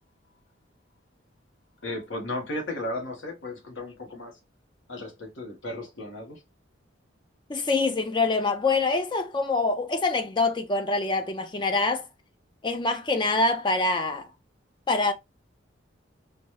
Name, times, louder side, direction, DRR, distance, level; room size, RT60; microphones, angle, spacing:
voice 1, 1.8-4.4 4.9-6.4, left 1 dB, 70° left, 1.2 m, -35 dB
voice 2, 7.5-12.1 12.6-14.3 14.9-15.1, left 3 dB, 25° left, 0.3 m, -25 dB
4.0 x 2.3 x 3.0 m
head